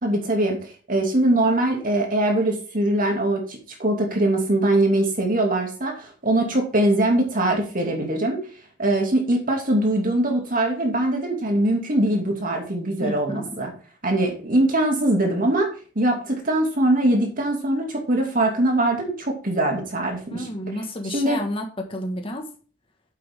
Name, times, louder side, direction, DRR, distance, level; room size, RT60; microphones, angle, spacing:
voice 1, 0.0-0.6 0.9-8.4 8.8-13.7 14.0-15.7 16.0-20.5 21.1-21.4, right 1 dB, 45° right, 2 dB, 2.5 m, -22 dB
voice 2, 13.0-13.4 20.3-22.5, left 1 dB, 30° left, 3 dB, 1.6 m, -30 dB
9.1 x 7.5 x 3.7 m, 0.39 s
head